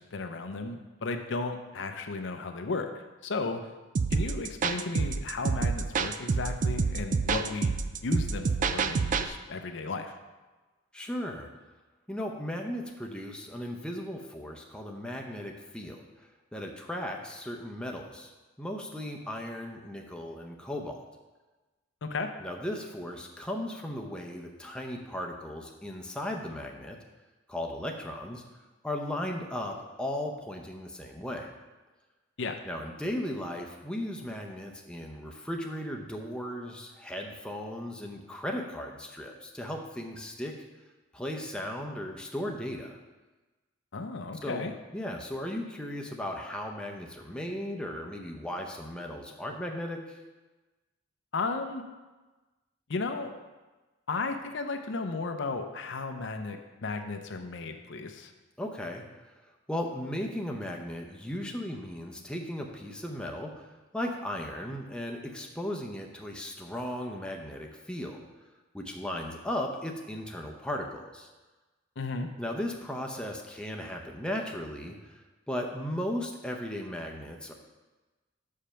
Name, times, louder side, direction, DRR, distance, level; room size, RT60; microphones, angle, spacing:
voice 1, 0.0-2.9 3.2-3.6 4.1-7.7 8.0-10.2 22.0-22.3 32.4-32.6 43.9-44.7 51.3-51.8 52.9-53.3 54.1-58.3 72.0-72.3, left 3 dB, 65° left, 6 dB, 0.6 m, -34 dB
sound 1, 3.9-9.3, right 5 dB, 40° right, 0.3 m, -28 dB
voice 2, 10.9-11.5 12.1-16.0 16.5-18.3 18.6-21.0 22.4-27.0 27.5-28.4 28.8-31.5 32.6-40.5 41.1-43.0 44.4-50.2 58.6-59.0 59.7-68.2 68.7-71.3 72.4-77.5, left 1 dB, 5° left, 1 dB, 0.6 m, -36 dB
6.4 x 5.1 x 5.6 m, 1.2 s
head